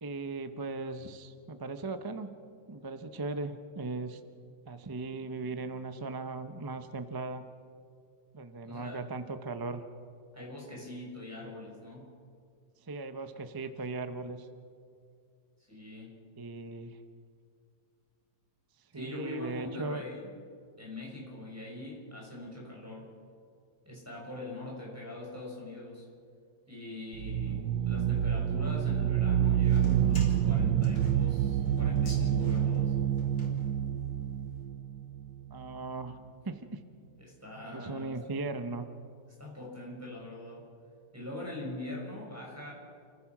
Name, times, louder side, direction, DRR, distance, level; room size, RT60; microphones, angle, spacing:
voice 1, 0.0-2.3 2.7-4.2 4.7-7.4 8.3-9.8 12.9-14.5 16.4-17.0 18.9-20.0 27.5-27.6 35.5-36.8 37.7-38.9, right 3 dB, 25° right, 8 dB, 0.5 m, -38 dB
voice 2, 8.6-9.0 10.3-12.1 15.7-16.2 18.9-20.3 20.8-23.1 23.8-26.1 26.7-32.9 37.3-38.2 39.3-40.7 41.1-42.7, left 2 dB, 10° right, -3 dB, 6.3 m, -43 dB
sound 1, 27.1-35.8, right 10 dB, 75° right, 1.3 m, -28 dB
sound 2, 29.6-34.2, left 1 dB, 90° left, 3.8 m, -45 dB
30.0 x 15.0 x 6.1 m, 2.3 s
omnidirectional pair, 1.9 m